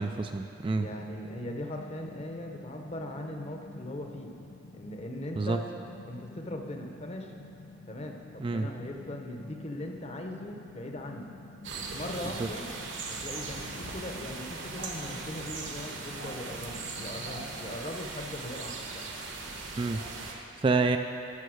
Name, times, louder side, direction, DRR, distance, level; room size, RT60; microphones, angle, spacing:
voice 1, 0.0-0.9 5.4-5.6 8.4-8.7 19.8-21.0, right 3 dB, 25° right, 6 dB, 0.3 m, -28 dB
sound 1, 0.7-17.8, left 2 dB, 70° left, 0.7 m, -49 dB
voice 2, 0.8-4.3 4.7-5.6 6.0-7.3 7.9-11.3 11.8-12.7 13.1-19.1, left 1 dB, 30° left, 3 dB, 0.9 m, -40 dB
sound 2, 11.6-20.3, right 3 dB, 65° right, 1.2 m, -39 dB
13.0 x 5.4 x 6.4 m, 2.7 s
head